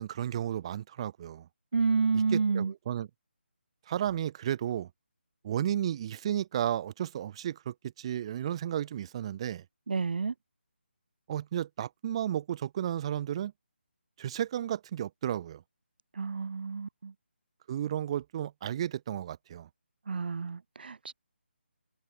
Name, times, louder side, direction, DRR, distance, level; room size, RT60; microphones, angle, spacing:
voice 1, 0.0-1.5 2.1-3.1 3.9-4.9 5.4-9.6 11.3-13.5 14.2-15.6 17.7-19.7, right 10 dB, 30° right, 4.6 m, -33 dB
voice 2, 1.7-2.7 9.9-10.3 16.2-17.1 20.1-21.1, right 5 dB, 55° right, 4.5 m, -29 dB
figure-of-eight pair, 160°, 6 cm